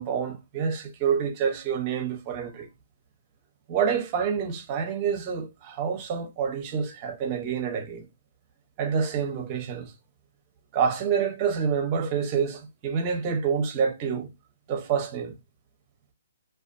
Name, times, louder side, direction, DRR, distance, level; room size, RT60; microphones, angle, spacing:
voice 1, 0.0-2.7 3.7-8.1 8.8-9.9 10.7-14.3 14.7-15.4, right 7 dB, 30° right, 0.6 m, -27 dB
2.3 x 2.3 x 2.5 m
hypercardioid pair, 155°, 0 cm